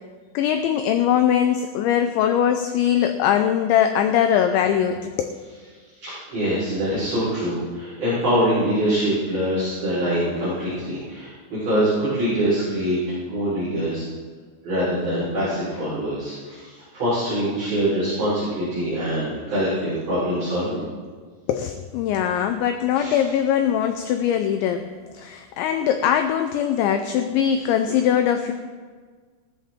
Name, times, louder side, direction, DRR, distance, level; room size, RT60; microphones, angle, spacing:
voice 1, 0.3-5.4 21.5-24.9 25.1-28.5, left 9 dB, 90° left, 7 dB, 2.6 m, -21 dB
voice 2, 6.0-13.0 13.3-14.0 14.6-20.8 22.9-23.1, equal, 30° right, -11 dB, 5.1 m, -24 dB
16.0 x 13.0 x 3.6 m, 1.6 s
omnidirectional pair, 6.0 m